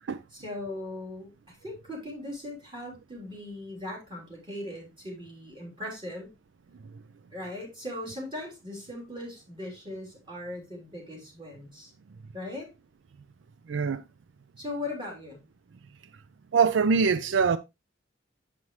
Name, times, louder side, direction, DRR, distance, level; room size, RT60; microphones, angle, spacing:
voice 1, 0.3-6.3 7.3-11.9 12.3-12.7 14.6-15.4, left 1 dB, 25° right, 3.5 m, -39 dB
voice 2, 13.7-14.0 16.5-17.6, right 5 dB, 80° right, 0.4 m, -23 dB
7.5 x 7.0 x 3.1 m
head